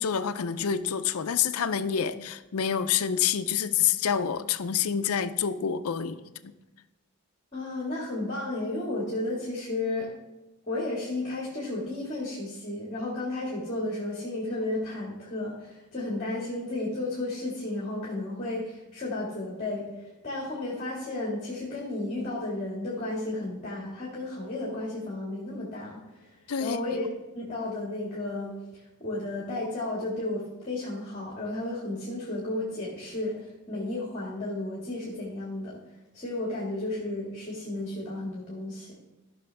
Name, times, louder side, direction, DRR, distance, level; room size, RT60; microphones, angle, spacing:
voice 1, 0.0-6.5 26.5-26.8, left 8 dB, 80° left, 12 dB, 0.5 m, -27 dB
voice 2, 7.5-10.1 10.7-27.1 27.3-35.8 36.1-38.9, left 2 dB, 30° left, -4 dB, 1.9 m, -33 dB
14.5 x 6.1 x 3.4 m, 1.1 s
head